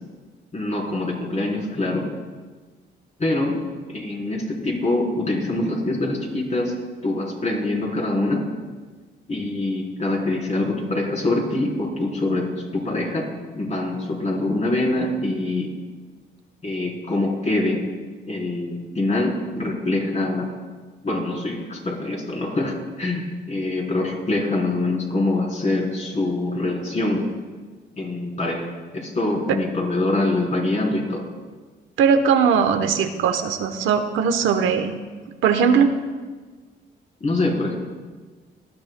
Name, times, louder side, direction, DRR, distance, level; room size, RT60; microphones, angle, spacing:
voice 1, 0.5-2.1 3.2-3.6 3.9-6.7 7.0-8.5 9.3-13.3 13.5-15.7 16.6-17.8 18.3-20.5 21.0-27.2 28.0-28.7 28.9-31.2 37.2-37.7, left 2 dB, 35° left, -2 dB, 3.8 m, -24 dB
voice 2, 32.0-34.9 35.4-35.9, right 6 dB, 85° right, 7 dB, 0.9 m, -19 dB
18.5 x 13.0 x 2.2 m, 1.4 s
cardioid pair, 90°, 20 cm